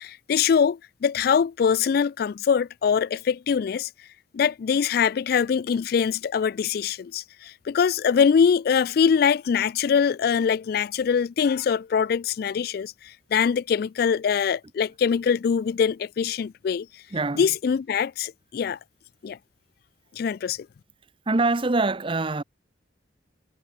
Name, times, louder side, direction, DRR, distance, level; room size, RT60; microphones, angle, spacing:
voice 1, 0.0-3.9 4.3-16.9 17.4-18.8 19.2-19.4 20.1-20.7, left 7 dB, 55° left, 0.3 m, -23 dB
voice 2, 17.1-17.5 21.3-22.4, right 3 dB, 30° right, 0.8 m, -24 dB
head